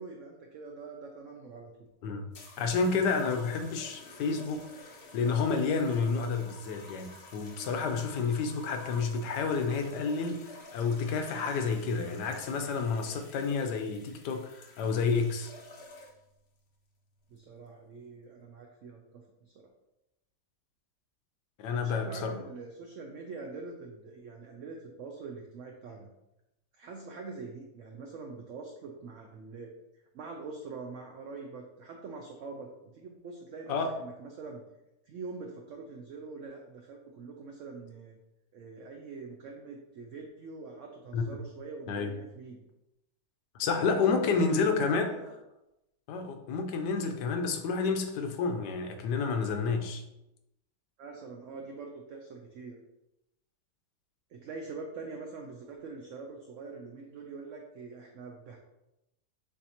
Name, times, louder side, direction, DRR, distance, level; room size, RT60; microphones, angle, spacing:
voice 1, 0.0-1.7 17.3-19.7 21.7-26.1 26.7-29.7 30.1-34.6 35.1-38.2 38.5-42.6 43.6-45.3 51.0-52.8 54.3-58.6, right 4 dB, 70° right, 2 dB, 0.7 m, -44 dB
sound 1, 2.3-16.3 17.2-17.6, left 2 dB, 55° left, 0.6 m, -51 dB
voice 2, 2.6-15.5 21.6-22.3 33.7-33.9 41.1-41.2 41.9-42.2 43.6-45.2 46.1-50.0, left 4 dB, 80° left, 5 dB, 1.2 m, -30 dB
7.0 x 2.6 x 2.8 m, 0.90 s
omnidirectional pair, 1.8 m